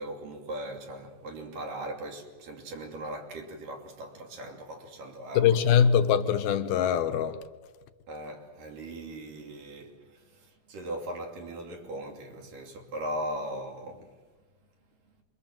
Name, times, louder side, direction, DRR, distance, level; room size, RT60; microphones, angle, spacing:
voice 1, 0.0-5.6 8.1-14.1, right 1 dB, 60° right, 4.4 m, -39 dB
voice 2, 5.4-7.4, left 8 dB, 80° left, 3.0 m, -23 dB
27.5 x 23.5 x 7.5 m
omnidirectional pair, 4.3 m